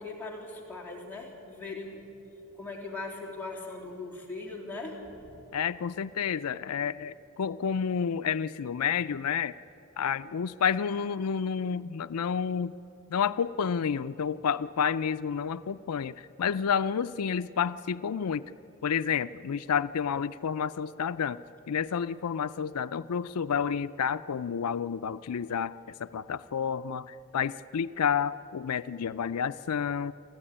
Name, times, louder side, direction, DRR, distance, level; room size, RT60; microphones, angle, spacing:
voice 1, 0.0-2.1 2.5-5.5, left 3 dB, 10° left, -4 dB, 3.5 m, -40 dB
voice 2, 5.5-9.5 10.0-12.7 13.1-18.4 18.8-21.4 21.7-30.1, left 7 dB, 90° left, 13 dB, 0.5 m, -30 dB
26.5 x 14.5 x 10.0 m, 2.9 s
head